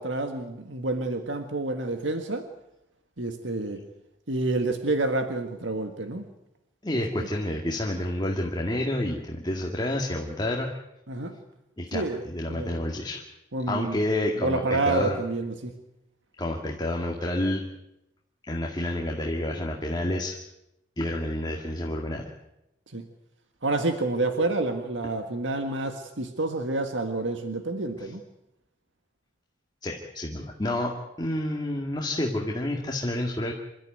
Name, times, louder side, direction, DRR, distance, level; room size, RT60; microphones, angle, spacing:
voice 1, 0.0-2.4 3.2-3.8 4.3-6.2 7.2-7.3 11.1-11.4 11.9-12.2 12.5-12.8 13.5-13.9 14.4-15.7 22.9-23.0 23.6-28.2, right 2 dB, 85° right, 6 dB, 1.8 m, -28 dB
voice 2, 6.8-10.7 11.8-13.2 13.7-15.2 16.4-17.6 18.5-20.4 21.0-22.2 28.0-28.1 29.8-33.5, left 1 dB, 25° left, 0 dB, 2.2 m, -29 dB
27.5 x 13.5 x 9.3 m, 0.89 s
head